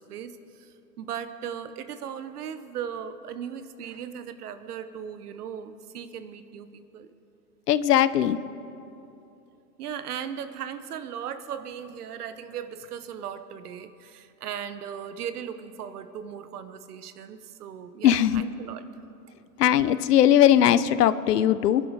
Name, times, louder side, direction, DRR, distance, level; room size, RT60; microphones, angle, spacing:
voice 1, 0.0-7.1 9.8-18.8, right 8 dB, 65° right, 11 dB, 1.2 m, -37 dB
voice 2, 7.7-8.4 18.0-18.4 19.6-21.8, left 11 dB, 70° left, 16 dB, 0.8 m, -19 dB
24.0 x 11.0 x 4.8 m, 2.8 s
hypercardioid pair, 120°, 49 cm